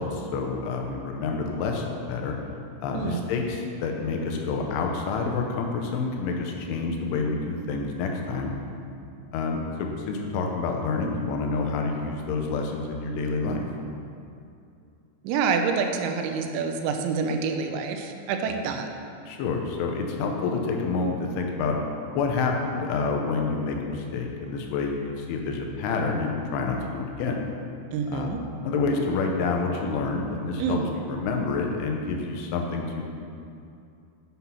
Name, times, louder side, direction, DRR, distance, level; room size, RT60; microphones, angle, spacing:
voice 1, 0.0-2.3 2.8-8.5 9.3-9.6 10.1-13.7 18.5-18.6 19.3-21.7 22.1-27.4 28.1-28.3 28.6-33.0, left 4 dB, 90° left, 2 dB, 3.4 m, -28 dB
voice 2, 15.2-18.9 27.9-28.4 30.6-30.9, right 5 dB, 85° right, 5 dB, 2.9 m, -27 dB
7.9 x 7.0 x 5.7 m, 2.6 s
omnidirectional pair, 5.4 m